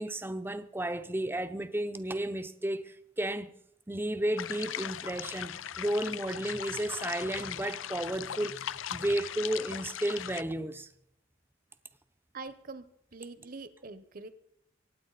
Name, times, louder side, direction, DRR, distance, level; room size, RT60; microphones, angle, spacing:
voice 1, 0.0-3.5 3.9-10.9, right 1 dB, 10° right, 0.7 m, -33 dB
sound 1, 4.4-10.4, left 10 dB, 90° left, 0.5 m, -39 dB
voice 2, 12.3-14.3, right 3 dB, 50° right, 1.1 m, -44 dB
23.5 x 9.8 x 4.2 m
head